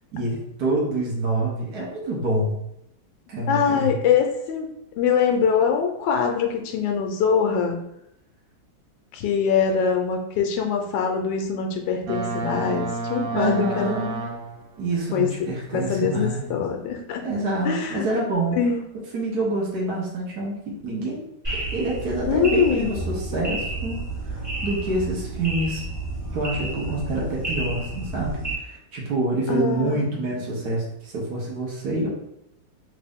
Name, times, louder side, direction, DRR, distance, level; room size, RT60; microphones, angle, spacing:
voice 1, 0.1-2.6 3.3-4.0 13.2-14.2 14.8-16.5 17.2-18.7 19.1-21.2 21.7-25.8 26.3-32.1, right 2 dB, 60° right, -3 dB, 1.3 m, -27 dB
voice 2, 3.5-7.8 9.1-14.0 15.1-15.3 15.7-17.2 17.6-18.1 18.5-18.8 22.3-22.9 29.5-30.0, left 6 dB, 80° left, 3 dB, 1.2 m, -23 dB
Boat Water vehicle, 12.1-14.8, right 3 dB, 85° right, 0.7 m, -30 dB
sound 1, 21.4-28.5, right 2 dB, 25° right, 1.2 m, -31 dB
3.6 x 2.6 x 3.4 m, 0.79 s
omnidirectional pair, 2.0 m